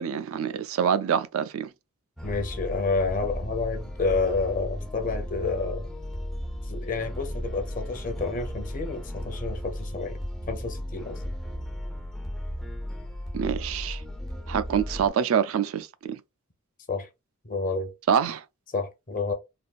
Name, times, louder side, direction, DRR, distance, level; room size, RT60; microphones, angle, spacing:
voice 1, 0.0-1.7 13.3-14.0 14.5-16.2 18.1-18.4, right 7 dB, 80° right, 0.3 m, -26 dB
voice 2, 2.2-5.9 6.7-10.2 10.5-11.2 16.9-17.1 17.4-17.9 18.7-19.3, left 4 dB, 40° left, 0.7 m, -29 dB
sound 1, 2.2-15.1, equal, ahead, 0.4 m, -35 dB
3.5 x 2.3 x 2.4 m
head